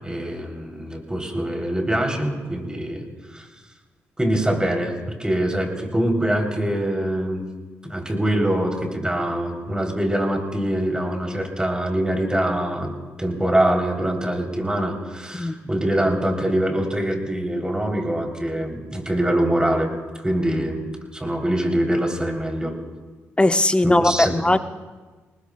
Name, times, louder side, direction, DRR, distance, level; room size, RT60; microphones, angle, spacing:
voice 1, 0.0-3.0 3.3-3.5 4.2-4.9 5.2-7.4 7.8-12.9 13.2-19.9 20.2-20.8 21.1-22.8 23.8-24.4, right 1 dB, 15° right, 2 dB, 3.6 m, -24 dB
voice 2, 23.4-24.6, left 2 dB, 15° left, 10 dB, 0.8 m, -18 dB
26.5 x 19.5 x 2.4 m, 1.3 s
hypercardioid pair, 40°, 6 cm